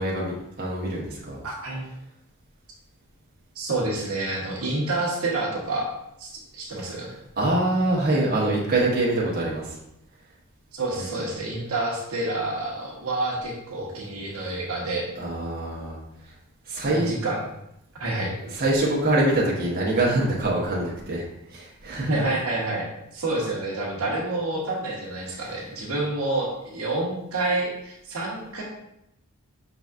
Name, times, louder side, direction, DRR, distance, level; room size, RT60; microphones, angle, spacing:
voice 1, 0.0-1.4 7.4-9.8 15.2-16.0 16.7-17.1 18.6-21.2 21.5-22.3 25.4-25.5, right 2 dB, 45° right, -4 dB, 1.1 m, -24 dB
voice 2, 1.4-1.9 3.5-5.9 6.2-7.1 10.7-15.1 16.9-17.4 18.0-18.3 22.0-28.6, right 2 dB, 70° right, -3 dB, 1.1 m, -28 dB
5.4 x 4.0 x 2.4 m, 0.82 s
head